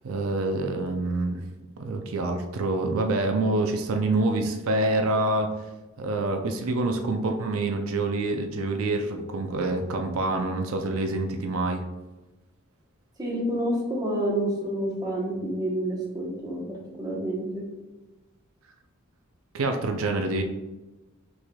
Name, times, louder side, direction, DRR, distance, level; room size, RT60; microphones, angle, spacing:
voice 1, 0.0-1.4 1.8-5.5 6.0-11.8 19.5-20.4, right 2 dB, 80° right, 5 dB, 0.4 m, -26 dB
voice 2, 13.2-17.6, right 1 dB, 20° right, -3 dB, 0.9 m, -29 dB
6.2 x 3.2 x 2.2 m, 1.1 s
head